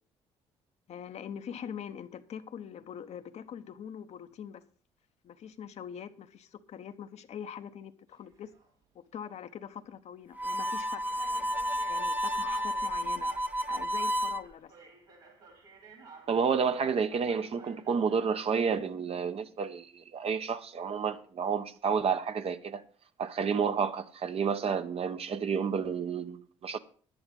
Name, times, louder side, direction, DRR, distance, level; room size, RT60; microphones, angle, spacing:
voice 1, 0.9-4.6 5.2-8.5 8.9-11.5 11.9-13.3 13.6-14.7, left 8 dB, 60° left, 1.0 m, -43 dB
sound 1, 8.1-8.7 9.4-9.6 10.5-10.6 11.2-18.5, right 4 dB, 85° right, 3.7 m, -53 dB
Harmonica, 10.4-14.4, equal, 15° right, 0.9 m, -31 dB
voice 2, 16.3-22.8 23.2-26.8, right 6 dB, 50° right, 1.1 m, -30 dB
10.5 x 10.5 x 5.3 m
hypercardioid pair, 55°, 13 cm